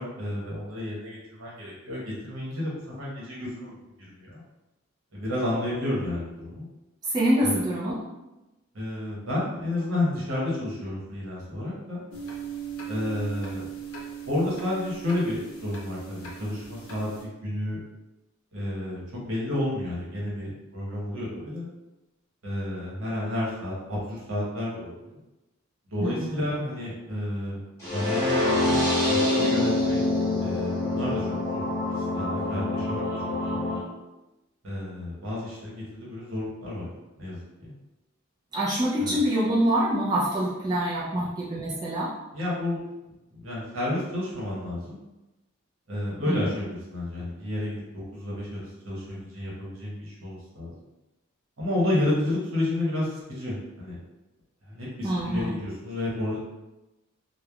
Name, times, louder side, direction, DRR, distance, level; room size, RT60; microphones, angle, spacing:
voice 1, 0.0-4.4 5.1-6.7 7.4-7.6 8.7-12.0 12.9-13.6 14.3-17.1 17.4-17.8 18.5-21.7 22.4-25.2 25.9-28.8 29.1-30.0 30.4-33.6 34.6-36.9 37.2-37.7 39.0-39.2 42.3-45.0 45.9-50.7 51.6-54.0 54.7-56.4, left 1 dB, 70° right, -5 dB, 1.0 m, -31 dB
voice 2, 7.0-8.0 26.0-26.5 38.5-42.1 46.3-46.4 55.0-55.5, right 1 dB, 20° right, -7 dB, 0.4 m, -25 dB
sound 1, 12.1-17.2, right 7 dB, 80° left, 0.6 m, -39 dB
sound 2, 27.8-33.8, left 2 dB, 15° left, 0.8 m, -25 dB
3.1 x 2.1 x 2.3 m, 1.0 s
head